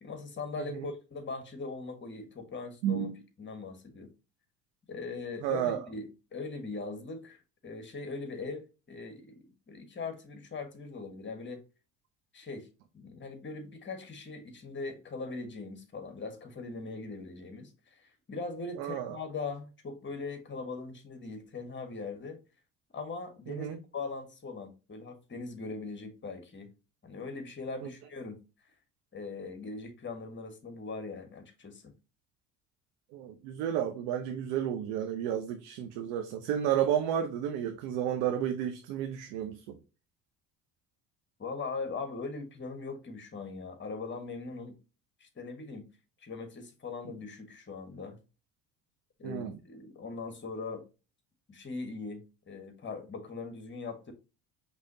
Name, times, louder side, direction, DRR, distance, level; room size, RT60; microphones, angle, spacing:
voice 1, 0.0-3.1 3.4-4.1 4.9-11.6 12.3-12.7 12.9-22.4 22.9-26.7 27.0-28.4 29.1-31.9 41.4-44.8 45.2-45.8 46.2-48.2 49.2-50.9 51.5-54.1, left 4 dB, 30° left, 1.5 m, -40 dB
voice 2, 2.8-3.2 5.4-5.8 18.8-19.2 23.5-23.8 27.8-27.9 33.1-39.8 49.2-49.5, right 10 dB, 85° right, 0.7 m, -32 dB
5.4 x 3.1 x 2.7 m
supercardioid pair, 85°, 39 cm